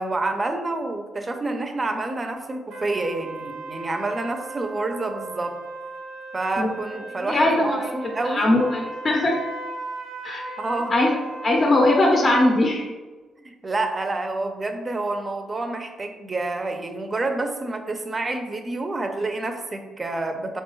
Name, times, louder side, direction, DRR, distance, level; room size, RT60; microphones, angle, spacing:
voice 1, 0.0-5.6 6.3-7.8 8.1-8.6 10.6-10.9 13.4-20.6, right 2 dB, 25° right, 5 dB, 0.5 m, -28 dB
sound 1, 2.7-12.6, right 2 dB, 85° right, 0.6 m, -37 dB
voice 2, 7.2-9.4 10.2-10.5 10.9-11.1 11.4-12.9, left 1 dB, 40° left, 0 dB, 0.6 m, -20 dB
4.6 x 2.2 x 3.0 m, 1.3 s
cardioid pair, 95°, 0 cm